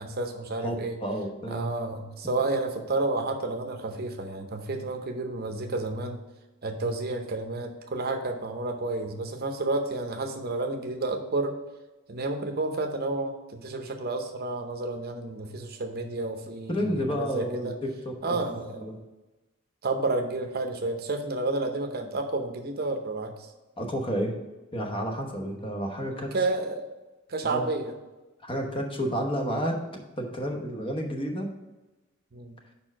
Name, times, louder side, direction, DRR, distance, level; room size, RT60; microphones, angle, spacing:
voice 1, 0.0-1.0 1.5-6.2 6.6-11.5 12.1-17.7 18.2-18.8 19.8-23.5 26.1-26.9 27.3-27.9 32.3-32.5, right 2 dB, 50° right, 5 dB, 0.7 m, -30 dB
voice 2, 0.6-1.7 16.7-18.4 18.8-19.0 23.8-24.4 24.7-26.3 27.5-27.6 28.4-31.5, equal, 25° left, 3 dB, 1.0 m, -31 dB
5.4 x 4.5 x 6.0 m, 1.1 s
head